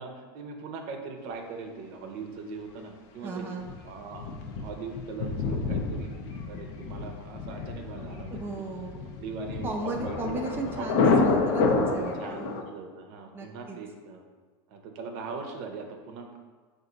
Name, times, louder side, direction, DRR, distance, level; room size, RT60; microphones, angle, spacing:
voice 1, 0.0-3.5 3.8-4.3 4.6-6.1 6.5-8.4 9.2-10.3 10.8-11.3 12.2-14.2 14.7-16.4, right 4 dB, 60° right, 3 dB, 0.6 m, -40 dB
voice 2, 3.2-3.7 8.3-9.1 9.6-12.5 13.3-13.8, right 2 dB, 15° right, 0 dB, 0.5 m, -35 dB
Thunder, 3.6-12.6, left 4 dB, 65° left, 0.6 m, -29 dB
4.7 x 2.6 x 3.9 m, 1.4 s
supercardioid pair, 115°, 13 cm